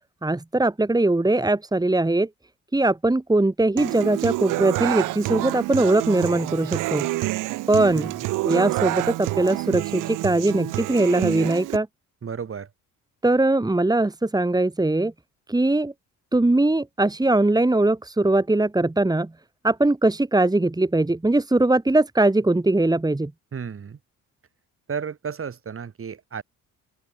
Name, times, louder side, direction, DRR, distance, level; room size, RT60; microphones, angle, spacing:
voice 1, 0.2-2.3 2.7-7.1 7.7-8.1 8.4-11.9 13.2-15.1 15.5-15.9 16.3-19.3 19.6-23.3, right 2 dB, 10° right, 2.9 m, -21 dB
Human voice / Acoustic guitar, 3.8-11.8, right 19 dB, 90° right, 0.9 m, -28 dB
voice 2, 7.9-8.3 12.2-12.7 23.5-24.0 24.9-26.4, right 6 dB, 45° right, 7.2 m, -33 dB
open air
cardioid pair, 90°, 31 cm